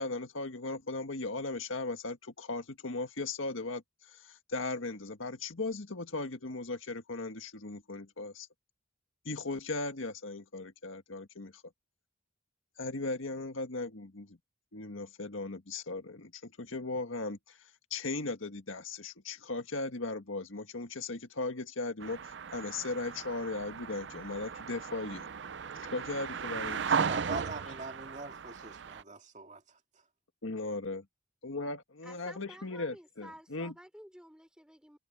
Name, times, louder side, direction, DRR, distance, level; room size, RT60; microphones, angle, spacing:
voice 1, 0.0-3.8 4.1-8.5 9.3-11.6 12.8-14.4 14.7-17.6 17.9-25.3 25.8-27.1 30.4-31.1 31.4-33.7, left 3 dB, 85° left, 1.8 m, -37 dB
sound 1, 22.0-29.0, right 6 dB, 60° right, 0.5 m, -36 dB
voice 2, 27.1-29.6, right 3 dB, 35° right, 2.4 m, -42 dB
voice 3, 32.0-35.0, equal, 5° right, 4.4 m, -52 dB
head